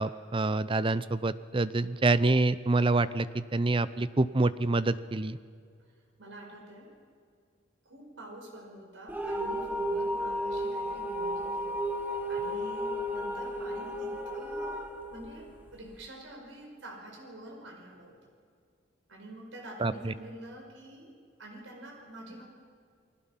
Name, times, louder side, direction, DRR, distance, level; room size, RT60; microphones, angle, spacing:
voice 1, 0.0-5.4 19.8-20.1, right 2 dB, 25° right, 15 dB, 0.6 m, -27 dB
voice 2, 6.2-7.0 7.9-11.7 12.0-18.3 19.1-21.1 21.4-22.4, right 1 dB, 75° right, 1 dB, 5.4 m, -47 dB
sound 1, 9.1-16.0, equal, 10° right, 1.4 m, -33 dB
29.5 x 20.5 x 5.8 m, 2.1 s
head